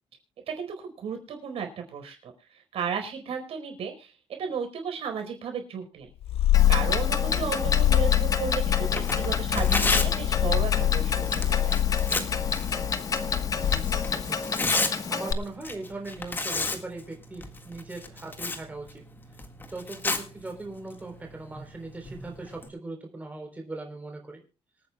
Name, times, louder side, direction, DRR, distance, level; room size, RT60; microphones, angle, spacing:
voice 1, 0.5-4.1 4.4-6.1 6.7-11.8, right 6 dB, 75° right, 5 dB, 4.5 m, -34 dB
Purr, 6.2-14.3, left 13 dB, 85° left, 0.5 m, -25 dB
Clock, 6.5-15.3, left 5 dB, 35° left, 1.3 m, -30 dB
Tearing, 8.8-22.7, left 3 dB, 20° left, 1.8 m, -34 dB
voice 2, 13.6-19.0 19.7-24.4, right 2 dB, 15° right, 2 dB, 3.7 m, -40 dB
26.0 x 9.4 x 2.3 m, 0.33 s
wide cardioid pair, 160°, 10 cm